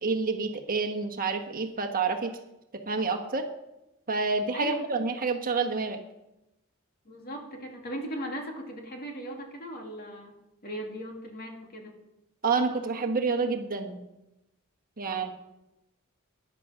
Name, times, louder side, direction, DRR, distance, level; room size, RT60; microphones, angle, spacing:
voice 1, 0.0-2.3 2.9-3.4 4.1-6.0 12.4-14.0 15.0-15.3, right 4 dB, 40° right, 5 dB, 1.3 m, -28 dB
voice 2, 4.5-4.9 7.0-10.3 10.6-11.9 15.1-15.3, equal, 45° left, 1 dB, 2.6 m, -38 dB
13.5 x 10.5 x 5.7 m, 0.92 s
head